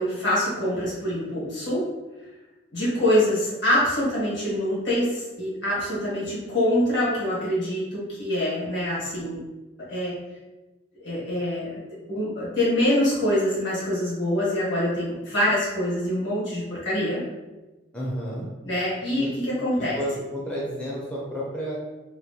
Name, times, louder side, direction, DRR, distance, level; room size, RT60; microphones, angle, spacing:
voice 1, 0.0-1.9 2.7-9.4 9.9-10.2 11.0-11.8 12.1-17.2 18.6-20.0, left 1 dB, 65° left, -7 dB, 1.4 m, -25 dB
voice 2, 17.9-18.5 19.1-19.3 19.9-21.8, equal, 10° left, -6 dB, 0.4 m, -31 dB
3.0 x 2.1 x 2.7 m, 1.1 s
head